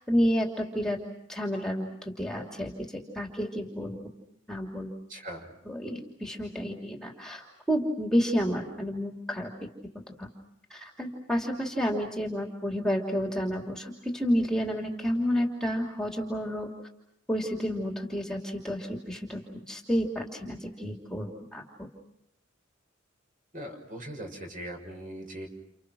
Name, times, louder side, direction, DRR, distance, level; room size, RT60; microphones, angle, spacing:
voice 1, 0.1-1.0 1.3-4.0 4.5-4.9 5.7-9.5 10.2-10.3 10.7-16.7 17.3-19.4 19.7-21.9, equal, 5° left, 2 dB, 2.9 m, -30 dB
voice 2, 5.1-5.5 23.5-25.5, right 1 dB, 45° right, 4 dB, 6.8 m, -40 dB
30.0 x 30.0 x 6.3 m, 0.79 s
head